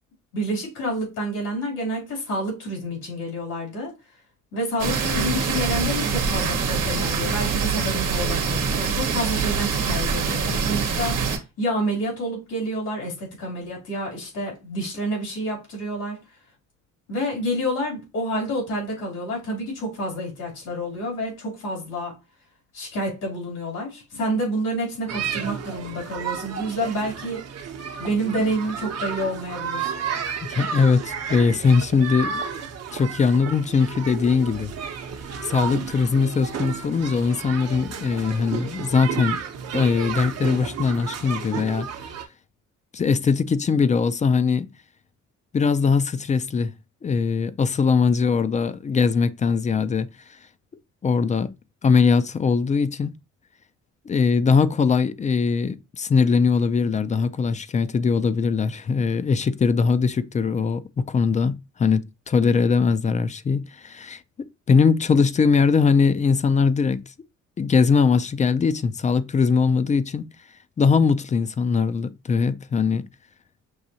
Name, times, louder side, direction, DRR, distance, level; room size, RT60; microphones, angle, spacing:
voice 1, 0.3-3.9 4.5-16.2 17.1-22.2 22.7-27.4 28.0-29.9, equal, 80° left, 3.0 m, -28 dB
sound 1, 4.8-11.4, right 5 dB, 90° right, 0.9 m, -24 dB
sound 2, 25.1-42.2, right 7 dB, 55° right, 0.8 m, -32 dB
voice 2, 30.4-32.4 32.9-34.7 35.4-39.4 39.7-41.9 42.9-44.7 45.5-46.7 47.0-50.1 51.0-51.5 51.8-53.2 54.1-67.0 67.6-70.3 70.8-73.1, left 5 dB, 25° left, 0.3 m, -21 dB
6.1 x 2.7 x 2.7 m
cardioid pair, 90°, 30 cm